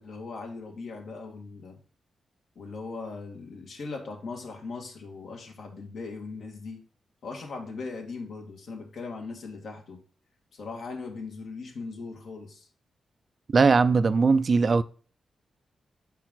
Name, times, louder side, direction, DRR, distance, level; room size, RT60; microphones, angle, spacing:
voice 1, 0.0-1.8 2.6-6.8 7.2-10.0 10.5-12.7, left 4 dB, 70° left, 1.8 m, -39 dB
voice 2, 13.5-14.8, right 4 dB, 45° right, 0.4 m, -20 dB
7.3 x 4.6 x 3.7 m
cardioid pair, 95°, 0 cm